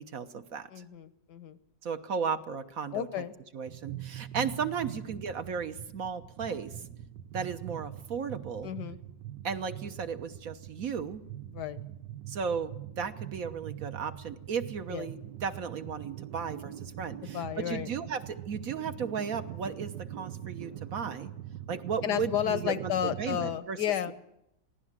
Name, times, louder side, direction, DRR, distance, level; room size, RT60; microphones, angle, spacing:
voice 1, 0.0-0.7 1.8-3.2 3.5-6.7 7.3-8.7 9.4-11.2 12.3-21.3 21.7-23.8, right 6 dB, 55° right, 9 dB, 1.4 m, -35 dB
voice 2, 0.7-1.6 2.9-3.3 8.6-9.0 11.5-11.8 14.9-15.1 17.2-17.9 22.0-24.1, left 10 dB, 70° left, 12 dB, 1.6 m, -32 dB
sound 1, 3.6-23.5, right 12 dB, 80° right, 1.7 m, -43 dB
23.0 x 16.5 x 7.5 m, 0.81 s
omnidirectional pair, 1.9 m